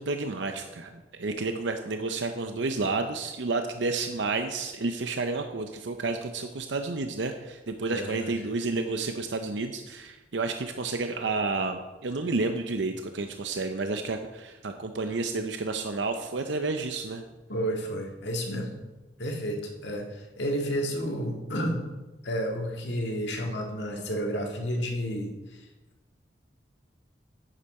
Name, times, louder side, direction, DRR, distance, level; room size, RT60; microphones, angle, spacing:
voice 1, 0.0-17.2, right 3 dB, 85° right, 6 dB, 0.7 m, -30 dB
voice 2, 7.9-8.4 17.5-18.7 19.2-21.9 22.2-25.7, equal, 80° left, 1 dB, 1.9 m, -31 dB
10.0 x 9.0 x 4.3 m, 1.1 s
head